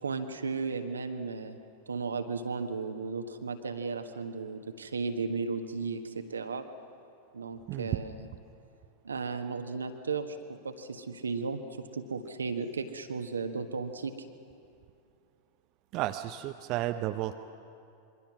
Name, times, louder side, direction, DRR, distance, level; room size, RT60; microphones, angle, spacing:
voice 1, 0.0-1.6 1.9-6.6 7.3-8.1 9.0-14.1, right 4 dB, 75° right, 7 dB, 1.4 m, -35 dB
voice 2, 15.9-17.4, right 14 dB, 40° right, 7 dB, 0.7 m, -33 dB
27.5 x 23.5 x 6.1 m, 2.4 s
figure-of-eight pair, 90°, 0 cm